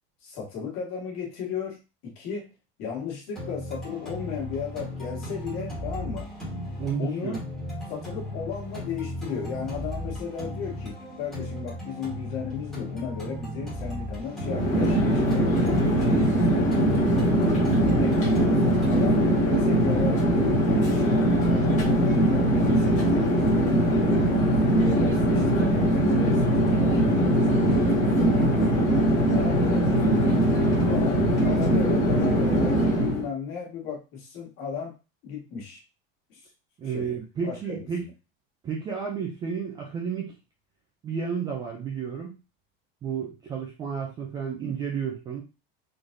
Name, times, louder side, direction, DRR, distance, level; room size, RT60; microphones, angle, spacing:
voice 1, 0.2-1.8 2.0-2.5 2.8-6.3 7.0-7.4 7.9-16.7 17.4-20.2 20.7-24.2 24.8-30.3 30.9-34.9 35.2-35.8 36.3-36.4 36.8-37.2 37.4-37.8, left 6 dB, 45° left, -1 dB, 1.6 m, -35 dB
sound 1, 3.4-21.3, left 1 dB, ahead, 1.2 m, -36 dB
voice 2, 6.8-7.4 17.7-18.1 36.8-38.1 38.6-40.3 41.0-42.4 43.0-45.4, right 6 dB, 15° right, -1 dB, 0.3 m, -32 dB
Chatter / Fixed-wing aircraft airplane, 14.4-33.3, right 1 dB, 25° left, 1.4 m, -21 dB
3.9 x 3.1 x 2.6 m, 0.29 s
cardioid pair, 180°, 30 cm